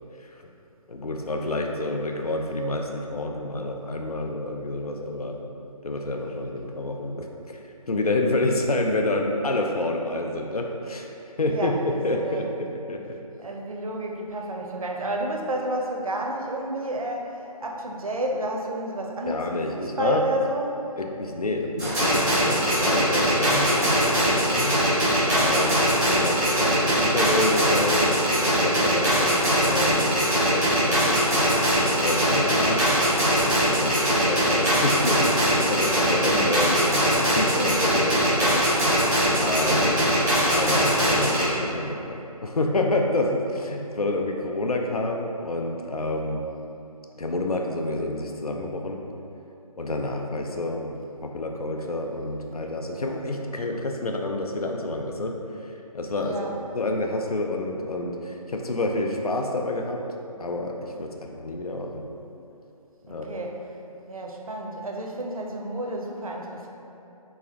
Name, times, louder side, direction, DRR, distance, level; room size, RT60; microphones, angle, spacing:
voice 1, 0.9-5.3 5.8-7.6 7.9-13.2 19.3-20.2 21.0-24.8 25.3-25.7 26.1-30.2 30.5-31.3 32.0-32.9 33.3-35.4 35.7-39.1 39.4-40.0 40.5-46.4 47.2-49.0 49.8-50.9 51.2-55.4 55.6-56.4 56.7-60.0 60.4-62.0 63.1-63.4, left 2 dB, 75° left, 2 dB, 0.5 m, -28 dB
voice 2, 11.5-12.5 13.4-20.8 25.6-25.7 56.2-56.5 63.1-63.7 64.1-66.7, right 1 dB, 65° right, 0 dB, 0.6 m, -31 dB
sound 1, 21.8-41.4, equal, 5° left, 0.4 m, -21 dB
4.1 x 3.5 x 2.5 m, 2.8 s
figure-of-eight pair, 150°, 19 cm